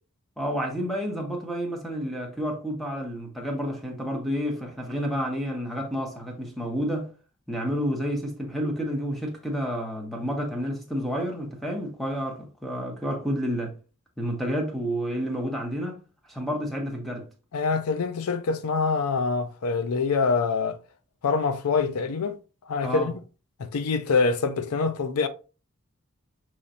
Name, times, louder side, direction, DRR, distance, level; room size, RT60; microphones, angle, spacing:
voice 1, 0.4-7.1 7.5-13.8 14.2-16.0 16.3-17.3 22.8-23.1, equal, ahead, 0.9 m, -30 dB
voice 2, 17.5-20.8 21.2-22.4 22.7-23.1 23.6-25.3, left 4 dB, 85° left, 0.5 m, -25 dB
5.6 x 3.1 x 2.6 m
head